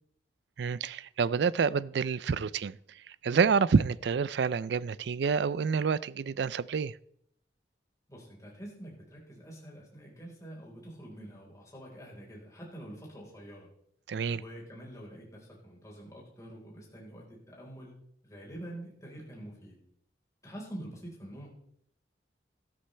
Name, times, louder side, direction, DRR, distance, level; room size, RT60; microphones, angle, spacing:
voice 1, 0.6-7.0 14.1-14.4, right 5 dB, 65° right, 0.4 m, -28 dB
voice 2, 8.1-13.7 14.3-18.0 18.2-19.8 20.4-21.5, right 1 dB, 20° left, 4.4 m, -46 dB
13.0 x 13.0 x 3.3 m
head